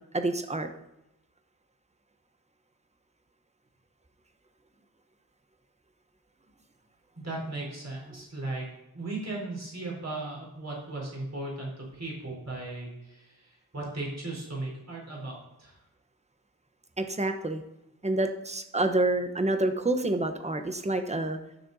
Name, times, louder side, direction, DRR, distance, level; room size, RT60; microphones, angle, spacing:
voice 1, 0.1-0.7 17.0-17.6 18.0-21.4, right 2 dB, 15° right, 7 dB, 1.0 m, -28 dB
voice 2, 7.2-8.7 8.9-15.7, right 2 dB, 40° right, -3 dB, 4.3 m, -37 dB
14.0 x 6.6 x 4.1 m, 0.91 s
wide cardioid pair, 80°, 38 cm